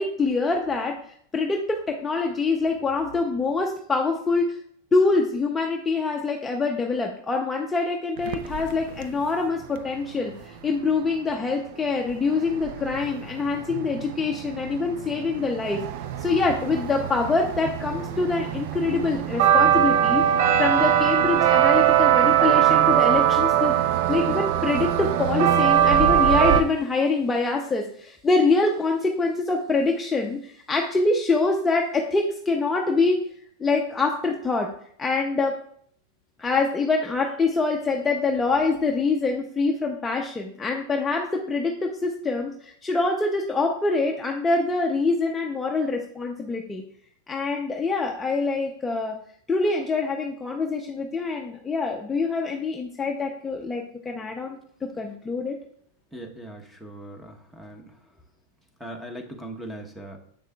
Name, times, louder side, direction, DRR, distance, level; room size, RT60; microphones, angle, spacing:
voice 1, 0.0-4.6 4.9-15.8 16.2-23.7 24.1-33.2 33.6-34.7 35.0-35.6 36.4-46.8 47.3-49.2 49.5-54.6 55.0-55.6, left 3 dB, 10° left, 1 dB, 0.6 m, -25 dB
Bell Tower at NC State University, 8.2-9.0 12.1-12.2 12.4-26.6, right 10 dB, 60° right, 0.5 m, -22 dB
voice 2, 56.1-57.9 58.8-60.2, right 1 dB, 5° right, 3 dB, 0.9 m, -39 dB
7.3 x 6.5 x 2.3 m, 0.64 s
supercardioid pair, 135°, 0 cm